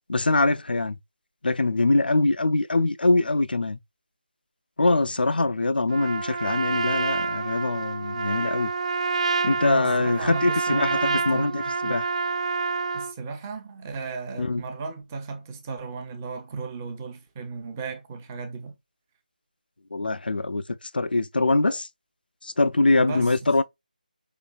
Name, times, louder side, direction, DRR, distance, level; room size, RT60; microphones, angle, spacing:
voice 1, 0.1-1.0 1.4-3.8 4.8-8.7 9.4-12.0 14.4-14.6 19.9-20.6 20.9-21.9 22.4-23.6, left 2 dB, 90° left, 0.6 m, -23 dB
Trumpet, 5.9-13.1, right 4 dB, 45° right, 0.4 m, -28 dB
voice 2, 9.6-12.0 12.9-18.8 23.0-23.5, right 4 dB, 15° right, 0.8 m, -36 dB
5.8 x 3.3 x 2.4 m
figure-of-eight pair, 170°, 5 cm